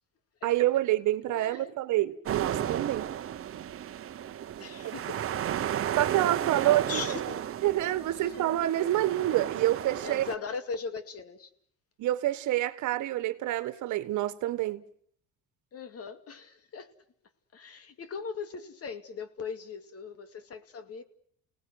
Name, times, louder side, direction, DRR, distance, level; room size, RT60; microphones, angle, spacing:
voice 1, 0.4-3.1 4.8-5.0 6.0-7.0 7.6-10.2 12.0-14.8, right 14 dB, 70° right, 1.5 m, -27 dB
voice 2, 1.3-1.7 4.6-5.6 6.9-7.5 8.1-8.4 10.0-11.5 15.7-16.9 17.5-21.0, left 5 dB, 50° left, 2.4 m, -39 dB
sound 1, 2.3-10.4, right 10 dB, 45° right, 1.1 m, -33 dB
29.5 x 18.5 x 7.9 m
cardioid pair, 105°, 31 cm